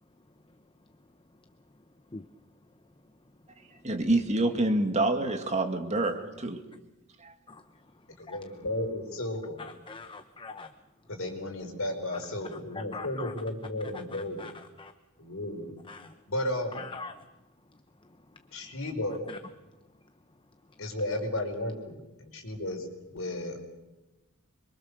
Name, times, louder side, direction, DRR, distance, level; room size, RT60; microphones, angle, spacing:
voice 1, 0.0-3.9 7.5-8.6 9.6-10.7 12.1-12.2 12.5-13.3 13.9-14.9 15.2-15.3 15.8-16.3 16.7-18.7 19.3-19.4 19.7-20.8, left 4 dB, 20° left, 8 dB, 0.8 m, -47 dB
voice 2, 3.8-6.6 7.2-7.3, right 2 dB, 30° right, 5 dB, 2.2 m, -27 dB
voice 3, 8.2-9.6 11.1-14.4 15.2-15.7 16.3-16.8 18.5-19.2 20.8-23.6, left 1 dB, 60° left, 3 dB, 5.1 m, -34 dB
25.5 x 23.5 x 6.8 m, 1.0 s
head